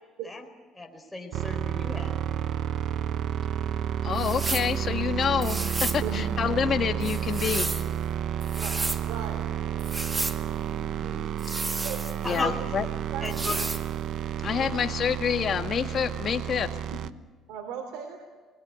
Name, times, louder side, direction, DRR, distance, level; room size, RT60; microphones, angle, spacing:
voice 1, 0.7-2.2 10.7-11.3 12.2-12.6 13.2-13.5 14.6-14.8, left 3 dB, 5° left, 1 dB, 4.3 m, -35 dB
sound 1, 1.3-17.1, right 9 dB, 65° right, 1.0 m, -31 dB
voice 2, 4.0-7.7 12.2-12.9 14.4-16.7, left 7 dB, 50° left, 6 dB, 1.9 m, -27 dB
sound 2, 4.2-4.7 5.4-6.0 7.0-7.9 8.4-9.0 9.8-10.4 11.4-12.4 13.2-13.8, right 2 dB, 20° right, 1.9 m, -32 dB
voice 3, 9.0-9.4 11.8-12.0 12.3-12.5 13.1-13.6 17.5-18.2, right 7 dB, 85° right, 5 dB, 3.4 m, -37 dB
27.0 x 21.0 x 9.8 m, 1.4 s
cardioid pair, 105°, 0 cm